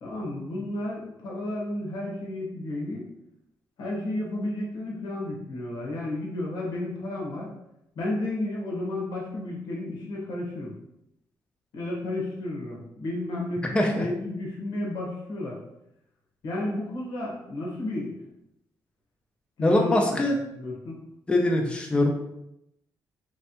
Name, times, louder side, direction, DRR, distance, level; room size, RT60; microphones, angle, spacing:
voice 1, 0.0-3.0 3.8-7.5 7.9-10.7 11.7-15.6 16.4-18.1 19.6-20.2 20.5-21.0, left 1 dB, 90° left, -2 dB, 1.3 m, -32 dB
voice 2, 13.7-14.1 19.6-20.4 21.3-22.1, left 1 dB, 15° left, 1 dB, 0.4 m, -22 dB
3.3 x 3.2 x 2.9 m, 0.82 s
cardioid pair, 140°, 7 cm